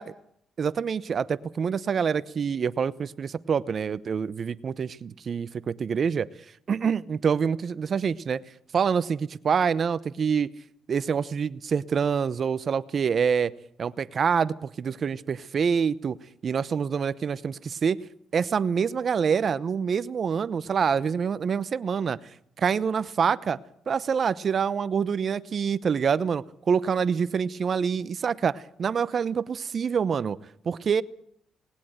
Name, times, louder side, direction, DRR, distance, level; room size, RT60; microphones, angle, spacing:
voice 1, 0.6-6.3 6.7-8.4 8.7-10.5 10.9-13.5 13.8-16.2 16.4-18.0 18.3-22.2 22.6-23.6 23.9-30.4 30.6-31.0, right 6 dB, 50° right, 18 dB, 0.8 m, -26 dB
19.5 x 19.0 x 8.0 m, 0.68 s
cardioid pair, 90°, 0 cm